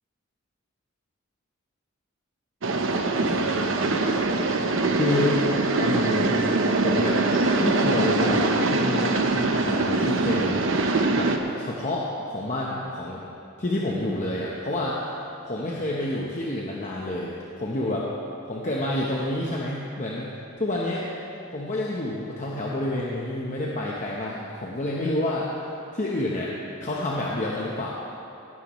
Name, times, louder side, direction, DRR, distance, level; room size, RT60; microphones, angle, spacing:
sound 1, 2.6-11.4, right 3 dB, 60° right, 0.8 m, -23 dB
voice 1, 3.1-3.8 4.1-4.5 5.0-5.4 5.8-6.4 6.8-7.2 7.6-10.6 11.1-11.3 11.6-13.2 13.6-15.0 15.4-18.1 18.5-20.3 20.6-21.1 21.5-25.5 25.9-26.5 26.8-27.9, left 1 dB, 35° left, -4 dB, 1.0 m, -29 dB
17.0 x 11.5 x 3.1 m, 2.7 s
head